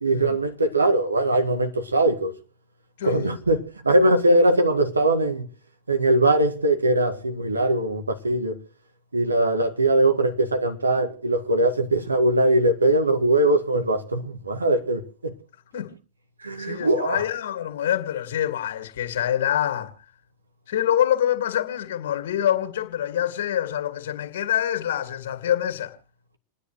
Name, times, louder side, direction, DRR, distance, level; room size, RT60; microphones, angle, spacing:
voice 1, 0.0-2.3 3.0-5.5 5.9-8.6 9.1-15.3 16.4-17.2, right 1 dB, 80° right, 1.8 m, -21 dB
voice 2, 3.0-3.3 15.7-16.0 16.6-19.9 20.7-26.0, left 10 dB, 55° left, 2.3 m, -26 dB
28.5 x 10.0 x 3.2 m
figure-of-eight pair, 90°, 0 cm